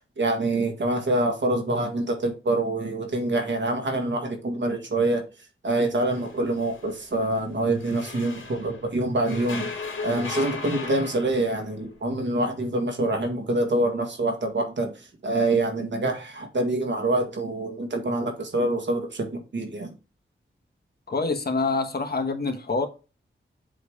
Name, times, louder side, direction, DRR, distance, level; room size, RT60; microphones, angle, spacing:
voice 1, 0.2-5.3 5.6-19.9, right 2 dB, 60° right, 1.8 m, -26 dB
sound 1, 6.1-8.9 9.3-11.7, left 4 dB, 70° left, 2.5 m, -37 dB
voice 2, 21.1-22.9, left 3 dB, 50° left, 1.3 m, -26 dB
7.9 x 3.2 x 4.8 m
wide cardioid pair, 80°, 21 cm